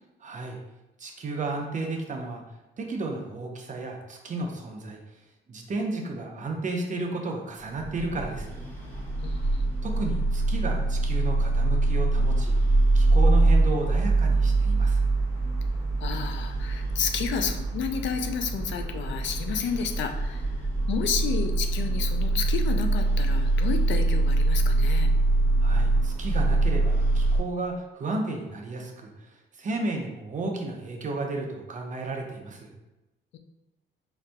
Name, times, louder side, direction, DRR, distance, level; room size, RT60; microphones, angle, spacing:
voice 1, 0.2-0.6 1.0-2.4 2.8-5.0 5.5-8.6 9.8-12.5 12.9-15.1 25.6-29.1 29.6-32.7, right 2 dB, 40° right, 1 dB, 0.6 m, -33 dB
sound 1, 7.8-27.4, right 2 dB, 10° left, 1.0 m, -24 dB
voice 2, 9.2-9.7 16.0-20.5 20.9-25.1, left 6 dB, 70° left, 6 dB, 0.4 m, -31 dB
4.0 x 2.6 x 2.2 m, 1.0 s
cardioid pair, 90°, 20 cm